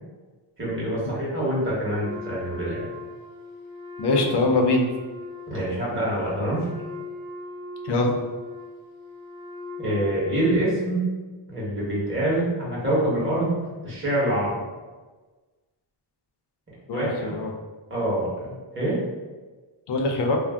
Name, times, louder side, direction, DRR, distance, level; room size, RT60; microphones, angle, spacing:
voice 1, 0.6-2.9 5.5-6.6 9.8-11.1 11.5-13.6 13.8-14.5 16.9-17.3 17.9-19.0, right 1 dB, 25° right, -7 dB, 1.1 m, -25 dB
Wind instrument woodwind instrument, 2.0-10.8, left 1 dB, 65° right, 0.7 m, -39 dB
voice 2, 4.0-4.9 7.8-8.2 16.9-17.5 19.9-20.4, left 2 dB, 60° left, 2 dB, 0.5 m, -22 dB
2.5 x 2.0 x 3.4 m, 1.3 s
wide cardioid pair, 130°, 47 cm